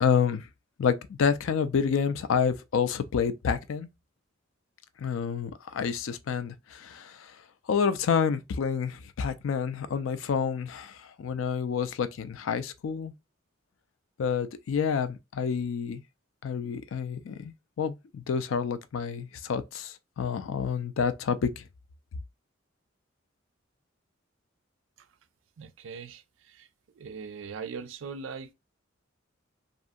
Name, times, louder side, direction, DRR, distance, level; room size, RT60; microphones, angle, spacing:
voice 1, 0.0-0.5 0.8-3.9 5.0-7.4 7.7-13.1 14.2-16.0 16.4-21.6, left 6 dB, 75° left, 0.4 m, -29 dB
voice 2, 25.6-26.7 26.9-28.5, right 5 dB, 70° right, 0.4 m, -40 dB
2.6 x 2.4 x 2.5 m
head